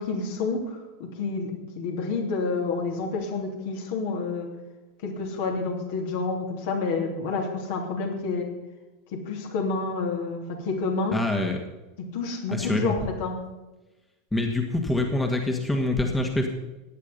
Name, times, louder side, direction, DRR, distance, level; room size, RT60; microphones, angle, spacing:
voice 1, 0.0-1.5 1.8-4.5 5.0-8.5 9.1-11.2 12.1-13.4, left 4 dB, 60° left, 1 dB, 3.1 m, -29 dB
voice 2, 11.1-11.6 12.5-12.9 14.3-16.5, left 2 dB, 10° left, 3 dB, 1.8 m, -25 dB
16.0 x 10.5 x 5.5 m, 1.1 s
figure-of-eight pair, 85°, 0 cm